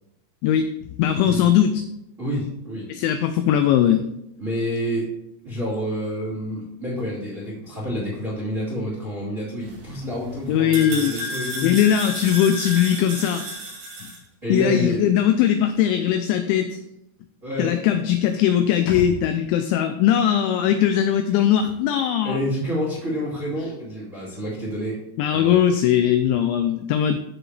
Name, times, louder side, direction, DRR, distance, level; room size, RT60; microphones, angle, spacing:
voice 1, 0.4-1.8 2.9-4.1 10.5-11.2 11.6-13.5 14.5-16.8 17.6-22.4 25.2-27.2, left 10 dB, 85° left, 8 dB, 2.6 m, -20 dB
voice 2, 2.2-2.9 4.4-5.0 5.4-11.7 14.4-15.0 17.4-17.7 22.2-25.0 25.3-25.6, equal, 25° right, -6 dB, 1.8 m, -28 dB
sound 1, 9.6-14.2, equal, 80° right, 5.9 m, -33 dB
sound 2, 18.9-22.4 22.6-22.7, left 3 dB, 70° left, 2.6 m, -39 dB
13.5 x 5.0 x 3.3 m, 0.85 s
omnidirectional pair, 5.8 m